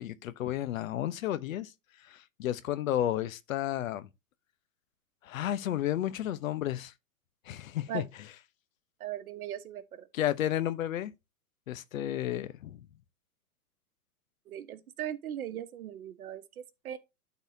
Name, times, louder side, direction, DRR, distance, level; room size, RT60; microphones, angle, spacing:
voice 1, 0.0-1.7 2.0-4.1 5.2-6.9 7.5-8.0 10.1-11.1 11.7-12.9, left 12 dB, 60° left, 0.9 m, -32 dB
voice 2, 9.0-10.1 14.5-17.0, right 11 dB, 70° right, 1.2 m, -39 dB
12.0 x 4.1 x 2.7 m
hypercardioid pair, 130°, 45 cm